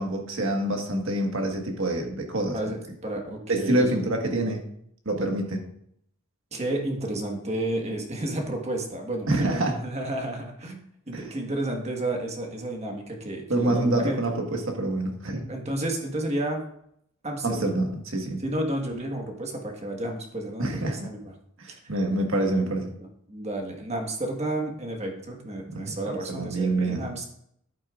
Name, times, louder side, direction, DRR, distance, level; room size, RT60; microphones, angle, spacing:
voice 1, 0.0-2.6 3.5-4.6 5.0-5.6 9.3-9.7 11.1-11.3 13.5-15.5 17.4-18.4 20.6-21.1 21.6-22.9 25.7-27.1, right 1 dB, 65° right, 2 dB, 1.6 m, -26 dB
voice 2, 3.0-4.1 6.5-14.2 15.5-16.6 17.2-17.7 18.4-21.2 22.6-22.7 23.0-27.3, right 1 dB, 30° right, 2 dB, 1.5 m, -31 dB
11.0 x 8.5 x 2.5 m, 0.71 s
head